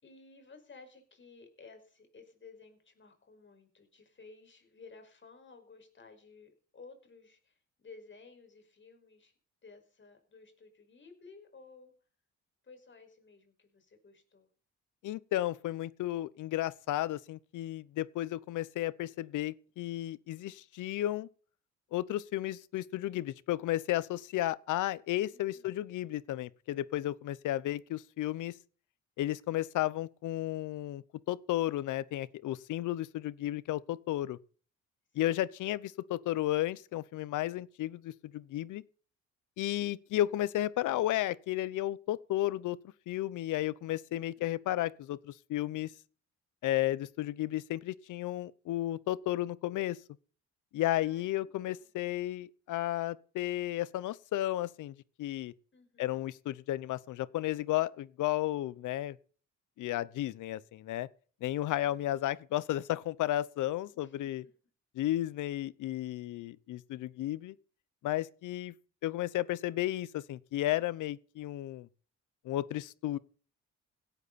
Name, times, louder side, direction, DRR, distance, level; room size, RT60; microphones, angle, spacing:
voice 1, 0.0-9.3 9.6-11.9 12.6-14.5 25.3-26.0 44.4-44.5 51.0-51.9 55.7-56.2 61.7-62.1 64.0-64.2, left 4 dB, 40° left, 5.5 m, -56 dB
voice 2, 15.0-21.3 21.9-28.5 29.2-34.4 35.1-38.8 39.6-42.8 43.1-45.9 46.6-50.0 50.7-55.5 56.0-59.2 59.8-61.1 61.4-64.4 65.0-67.5 68.0-68.7 69.0-71.9 72.4-73.2, left 14 dB, 80° left, 0.9 m, -33 dB
17.0 x 12.0 x 4.2 m
cardioid pair, 90°, 30 cm